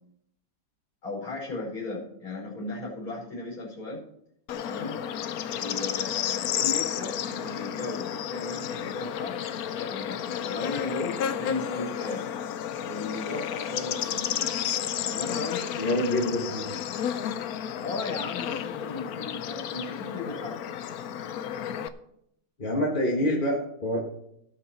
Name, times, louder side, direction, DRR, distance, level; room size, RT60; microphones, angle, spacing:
voice 1, 1.0-4.0 4.7-5.0 5.5-9.4 9.7-12.3 12.8-14.5 15.0-15.6 17.8-20.6, left 3 dB, 50° left, -5 dB, 5.2 m, -36 dB
Bird / Insect, 4.5-21.9, left 9 dB, 70° left, 1.0 m, -32 dB
voice 2, 15.8-16.7 22.6-24.0, left 1 dB, 25° left, -4 dB, 1.8 m, -26 dB
17.5 x 6.1 x 4.3 m, 0.75 s
omnidirectional pair, 2.0 m